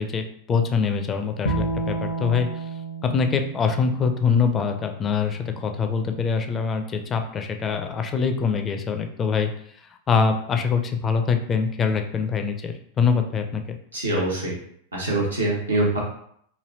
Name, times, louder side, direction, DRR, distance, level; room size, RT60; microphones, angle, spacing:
voice 1, 0.0-2.5 3.0-9.5 10.1-13.8, left 5 dB, 25° left, 5 dB, 0.4 m, -24 dB
Bowed string instrument, 1.5-4.7, right 3 dB, 70° left, 0.6 m, -30 dB
voice 2, 13.9-14.5 14.9-16.0, right 2 dB, 80° right, -4 dB, 0.8 m, -24 dB
3.1 x 2.6 x 2.6 m, 0.67 s
figure-of-eight pair, 90°, 0 cm